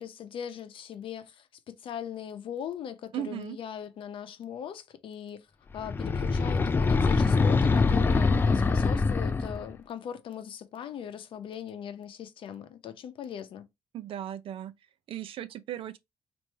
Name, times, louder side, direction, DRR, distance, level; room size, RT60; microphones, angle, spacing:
voice 1, 0.0-5.5 5.7-13.7, left 8 dB, 65° left, 0.7 m, -40 dB
voice 2, 3.1-3.6 13.9-14.7 15.1-16.0, right 11 dB, 70° right, 0.5 m, -36 dB
sound 1, 5.8-9.7, left 4 dB, 20° left, 0.4 m, -24 dB
3.1 x 2.6 x 4.4 m
cardioid pair, 130°, 10 cm